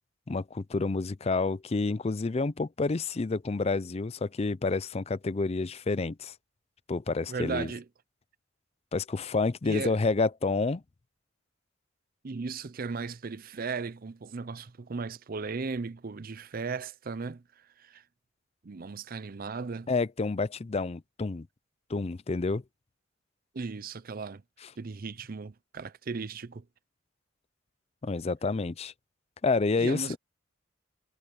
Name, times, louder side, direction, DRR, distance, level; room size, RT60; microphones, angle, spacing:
voice 1, 0.3-6.3 6.9-7.7 8.9-10.8 19.9-21.5 21.9-22.6 28.0-28.9 29.4-30.2, left 3 dB, 30° left, 0.5 m, -29 dB
voice 2, 7.3-7.8 9.6-10.0 12.2-18.0 18.6-19.9 23.5-24.4 24.8-26.6 29.8-30.2, right 4 dB, 50° right, 0.6 m, -36 dB
head